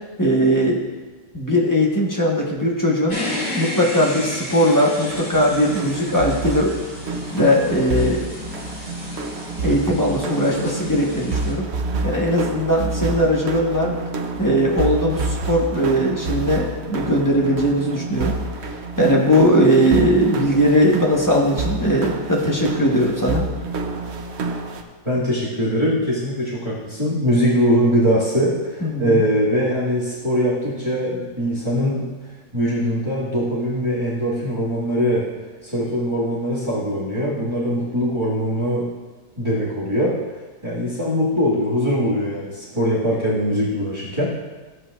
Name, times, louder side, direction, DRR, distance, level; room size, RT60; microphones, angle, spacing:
voice 1, 0.2-0.8 1.3-3.2 3.6-6.8 7.3-8.2 9.6-11.7 12.0-13.9 14.4-18.4 19.0-23.5 28.8-29.2, equal, 15° left, -2 dB, 1.1 m, -19 dB
sound 1, 3.1-11.5, left 1 dB, 50° left, 3.2 m, -33 dB
sound 2, 5.1-24.8, right 3 dB, 55° right, 0.8 m, -28 dB
voice 2, 25.0-32.1 32.5-35.3 35.6-38.9 39.4-40.2 40.6-44.2, equal, 15° right, -8 dB, 1.9 m, -21 dB
14.0 x 8.1 x 2.5 m, 1.3 s
omnidirectional pair, 1.8 m